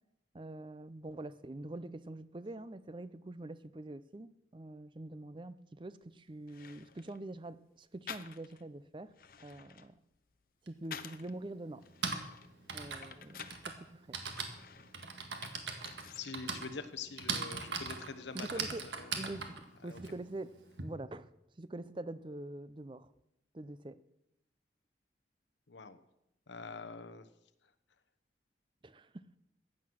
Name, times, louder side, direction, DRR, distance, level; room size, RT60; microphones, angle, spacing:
voice 1, 0.3-9.1 9.4-10.0 10.6-11.8 12.7-14.2 18.3-18.8 19.2-19.6 19.8-20.5 20.8-21.3 21.6-23.1 23.5-24.0 28.8-29.3, right 2 dB, 25° right, 15 dB, 0.5 m, -45 dB
sound 1, 6.0-6.1 6.5-7.2 8.1-8.7 9.1-11.3 11.8-13.7 14.2-16.4 16.7-17.5, left 7 dB, 55° left, 0.7 m, -50 dB
Typing, 10.7-10.8 11.7-20.8, right 5 dB, 85° right, 1.8 m, -40 dB
voice 2, 16.1-18.5 19.0-19.2 19.8-20.0 25.7-26.0 26.5-27.3, left 4 dB, 90° left, 11 dB, 1.1 m, -45 dB
15.0 x 9.5 x 6.3 m, 0.83 s
head